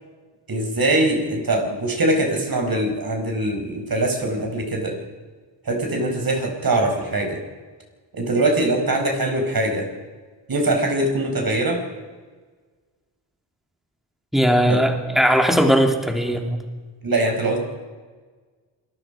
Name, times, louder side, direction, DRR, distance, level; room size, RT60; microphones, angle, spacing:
voice 1, 0.5-5.0 5.7-7.4 8.1-9.9 10.5-11.8 14.7-14.9 17.0-17.6, right 1 dB, 50° right, 3 dB, 5.1 m, -22 dB
voice 2, 14.3-16.6, equal, ahead, 3 dB, 3.0 m, -18 dB
26.5 x 20.0 x 5.1 m, 1.4 s
wide cardioid pair, 100°, 45 cm